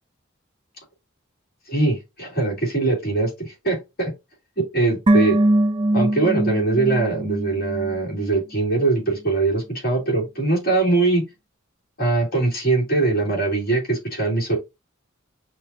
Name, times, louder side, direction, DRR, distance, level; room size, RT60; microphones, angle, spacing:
voice 1, 1.7-4.1 4.7-5.4 5.9-11.3 12.0-14.6, right 3 dB, 50° left, 2.9 m, -22 dB
sound 1, 5.1-8.4 8.6-8.7, right 1 dB, 25° right, 0.3 m, -21 dB
6.0 x 2.8 x 2.6 m
head